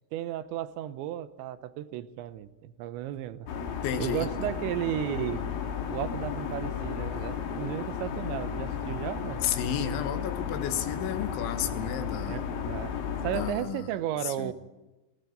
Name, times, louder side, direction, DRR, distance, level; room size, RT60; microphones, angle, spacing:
voice 1, 0.1-5.4 5.9-9.4 12.3-12.9 13.2-14.5, right 12 dB, 80° right, 3.2 m, -34 dB
sound 1, 3.5-13.5, left 7 dB, 55° left, 3.2 m, -34 dB
voice 2, 3.8-4.3 9.4-12.4 13.3-13.9 14.2-14.5, left 9 dB, 80° left, 3.9 m, -32 dB
21.0 x 19.0 x 9.3 m
omnidirectional pair, 5.3 m